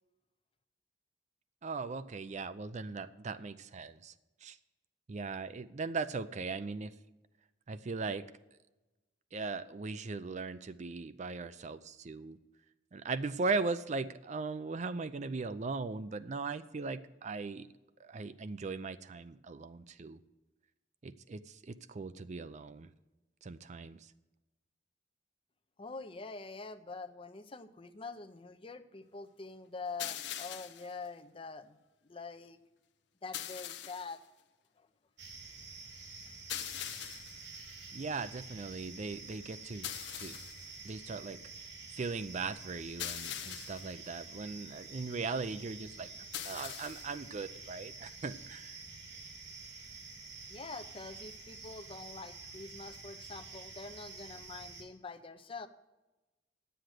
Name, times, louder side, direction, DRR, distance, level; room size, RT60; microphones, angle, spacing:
voice 1, 1.6-4.1 4.4-4.6 5.1-6.9 7.7-8.3 9.3-12.4 12.9-17.7 18.0-20.2 21.0-22.9 23.4-24.1 37.9-40.3 40.8-41.4 41.9-48.8, right 4 dB, 40° right, 13 dB, 0.5 m, -39 dB
voice 2, 25.8-31.8 32.0-32.6 33.2-34.2 34.8-34.9 50.5-55.7, left 4 dB, 30° left, 10 dB, 0.6 m, -45 dB
sound 1, 30.0-30.9 33.3-34.2 36.5-37.4 39.8-40.7 43.0-43.9 46.3-47.2, left 11 dB, 75° left, 0.7 m, -41 dB
sound 2, 35.2-54.8, right 4 dB, 90° right, 2.7 m, -49 dB
10.5 x 7.8 x 6.5 m, 1.1 s
head